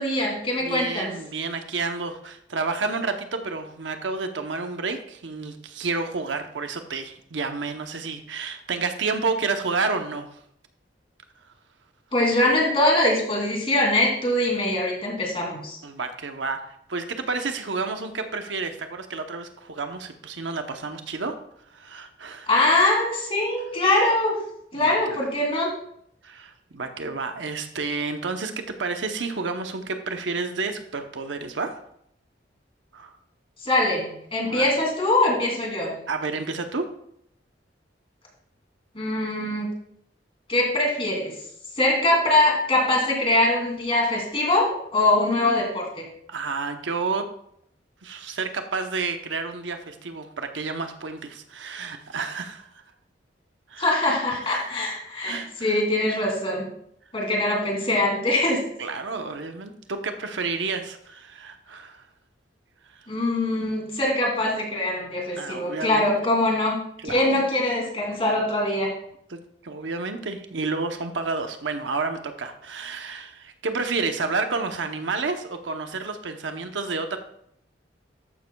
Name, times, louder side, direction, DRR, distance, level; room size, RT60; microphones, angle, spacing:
voice 1, 0.0-1.1 12.1-15.8 22.5-24.4 24.7-25.7 33.6-35.9 38.9-39.7 40.5-41.3 41.8-44.6 44.9-46.0 53.8-56.7 57.1-58.6 63.1-66.8 67.0-68.9, left 1 dB, 30° left, -1 dB, 2.7 m, -23 dB
voice 2, 0.6-10.4 15.8-21.3 21.7-22.5 24.7-25.2 26.2-31.8 32.9-33.2 34.4-34.7 36.1-36.9 46.3-47.3 48.0-52.8 53.7-53.9 54.5-54.6 55.3-55.8 58.8-62.0 65.4-66.1 67.0-67.4 69.3-77.2, right 4 dB, 85° right, 7 dB, 0.9 m, -30 dB
13.0 x 9.6 x 2.3 m, 0.71 s
head